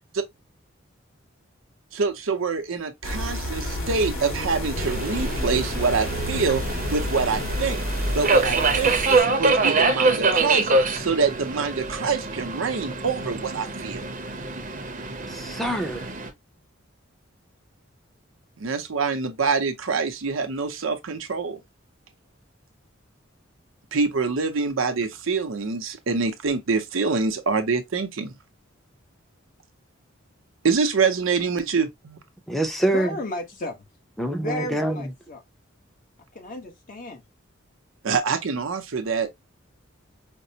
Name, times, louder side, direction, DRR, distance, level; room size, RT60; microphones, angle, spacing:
voice 1, 1.9-6.6 6.9-7.8 8.1-14.0 18.6-21.6 23.9-28.3 30.6-32.2 38.0-39.3, right 4 dB, 85° right, 0.7 m, -25 dB
sound 1, 3.0-9.2, equal, 75° left, 1.9 m, -30 dB
Subway metro underground, 4.8-16.3, right 3 dB, 45° right, 0.7 m, -25 dB
voice 2, 15.3-16.1 32.5-33.2 34.2-35.1, right 1 dB, ahead, 0.6 m, -25 dB
voice 3, 32.8-33.8 34.4-35.4 36.3-37.2, left 1 dB, 45° left, 1.1 m, -33 dB
5.1 x 2.0 x 2.7 m
head